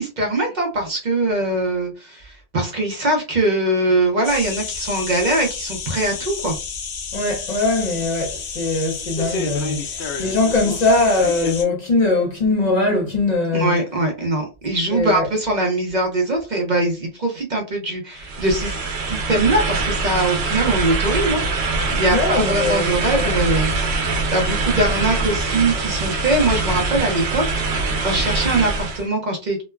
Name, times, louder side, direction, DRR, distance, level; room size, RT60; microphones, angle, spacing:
voice 1, 0.0-6.6 13.5-23.7 24.3-29.6, right 2 dB, 50° right, 0.7 m, -22 dB
sound 1, 4.2-11.6, left 5 dB, 80° left, 0.9 m, -30 dB
voice 2, 7.1-13.8 14.9-15.3 22.1-23.3, left 2 dB, 45° left, 0.7 m, -21 dB
sound 2, 18.2-29.1, right 3 dB, 80° right, 0.9 m, -23 dB
3.0 x 2.1 x 2.2 m
omnidirectional pair, 1.1 m